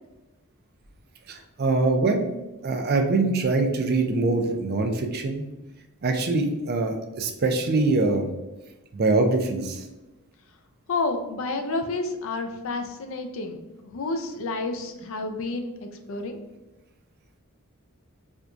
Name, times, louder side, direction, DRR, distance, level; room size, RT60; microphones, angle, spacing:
voice 1, 1.3-2.3 2.6-5.5 6.0-8.3 8.9-9.8, right 3 dB, 50° right, 4 dB, 0.5 m, -23 dB
voice 2, 10.9-16.4, left 3 dB, 65° left, 6 dB, 0.5 m, -30 dB
4.4 x 2.3 x 2.5 m, 1.0 s
head